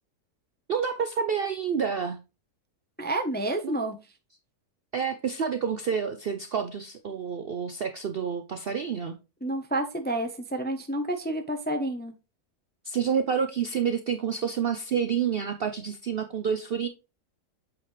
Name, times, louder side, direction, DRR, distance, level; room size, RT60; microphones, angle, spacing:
voice 1, 0.7-2.2 3.6-3.7 4.9-9.2 12.8-16.9, right 7 dB, 60° right, 0.6 m, -28 dB
voice 2, 3.0-4.0 9.4-12.1, right 1 dB, 10° left, 0.5 m, -29 dB
8.3 x 5.1 x 3.1 m
omnidirectional pair, 1.7 m